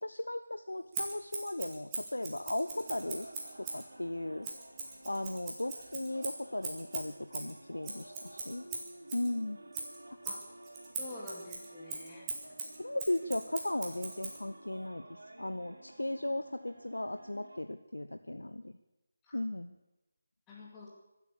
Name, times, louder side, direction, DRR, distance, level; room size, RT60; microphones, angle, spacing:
voice 1, 0.0-3.3 3.6-4.5 5.0-8.7 9.1-9.6 12.8-18.8 19.3-19.7, left 1 dB, 75° left, 9 dB, 0.8 m, -36 dB
Scissors, 0.9-3.9 4.4-9.3 9.7-14.4, right 4 dB, 15° right, 2.7 m, -41 dB
sound 1, 2.6-17.6, right 1 dB, 70° right, 3.6 m, -53 dB
voice 2, 11.0-12.3 19.3-19.4 20.5-20.9, left 2 dB, 10° left, -5 dB, 2.5 m, -47 dB
24.5 x 8.3 x 7.0 m, 0.99 s
figure-of-eight pair, 155°, 0 cm